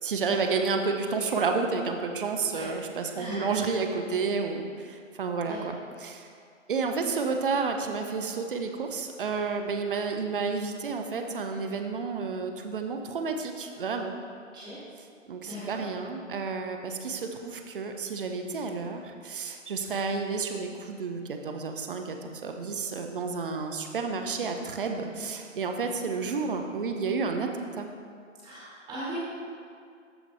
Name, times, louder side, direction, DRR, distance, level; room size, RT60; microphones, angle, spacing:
voice 1, 0.0-5.7 6.0-6.3 6.7-14.1 15.3-27.9, right 4 dB, 40° right, 5 dB, 0.7 m, -31 dB
voice 2, 3.2-3.5 5.4-5.6 14.5-14.7 15.4-15.8 25.1-25.2 28.4-29.1, equal, 10° right, -10 dB, 1.7 m, -39 dB
13.0 x 5.0 x 3.3 m, 2.3 s
figure-of-eight pair, 135°, 39 cm